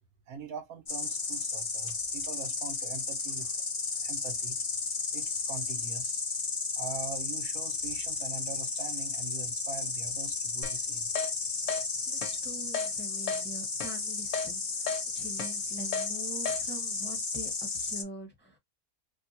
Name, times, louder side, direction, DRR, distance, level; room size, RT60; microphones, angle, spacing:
voice 1, 0.3-3.6 4.0-4.6 5.1-6.2 6.7-11.1, right 5 dB, 80° right, 1.3 m, -42 dB
Insect, 0.9-18.0, left 4 dB, 35° left, 0.5 m, -34 dB
Keyboard (musical), 10.6-10.8 11.2-11.3 11.7-11.8 12.2-12.3 12.7-12.9 13.3-13.4 13.8-13.9 14.3-14.5 14.9-15.0 15.4-15.5 15.9-16.1 16.5-16.6, left 5 dB, 65° left, 1.0 m, -32 dB
voice 2, 12.0-18.6, right 1 dB, 10° left, 1.1 m, -44 dB
3.6 x 2.4 x 2.7 m
omnidirectional pair, 1.6 m